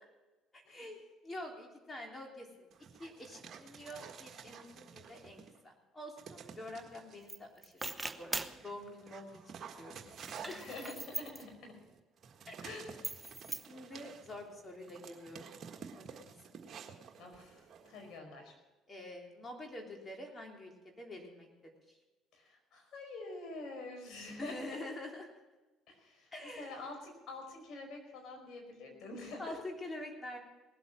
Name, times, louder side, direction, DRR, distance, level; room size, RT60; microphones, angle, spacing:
voice 1, 0.5-2.7 3.0-7.8 8.2-10.6 12.5-12.6 13.7-15.5 15.9-16.6 18.9-22.0 24.4-25.3 26.3-26.9 29.4-30.4, left 1 dB, 25° left, 1 dB, 3.4 m, -47 dB
Dog, 2.7-5.6 6.2-7.2 7.8-18.2, right 6 dB, 50° right, 1.6 m, -52 dB
sound 1, 7.3-7.4 7.6-8.6 10.1-11.4 13.0-13.7, right 2 dB, 15° right, 0.9 m, -40 dB
voice 2, 9.8-10.2 10.4-11.7 12.6-13.0 17.2-18.5 22.3-24.8 25.9-29.6, left 2 dB, 60° left, 2 dB, 5.0 m, -47 dB
19.0 x 8.1 x 6.1 m, 1.2 s
hypercardioid pair, 65°, 0 cm